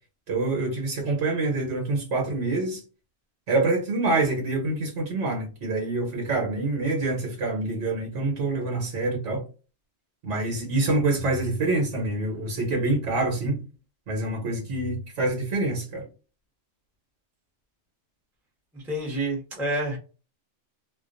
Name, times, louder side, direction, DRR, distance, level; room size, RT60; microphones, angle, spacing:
voice 1, 0.3-2.8 3.5-9.4 10.2-13.6 14.1-16.1, right 2 dB, 75° right, 1.1 m, -26 dB
voice 2, 18.7-20.0, right 1 dB, ahead, 0.6 m, -28 dB
2.4 x 2.2 x 2.4 m
omnidirectional pair, 1.2 m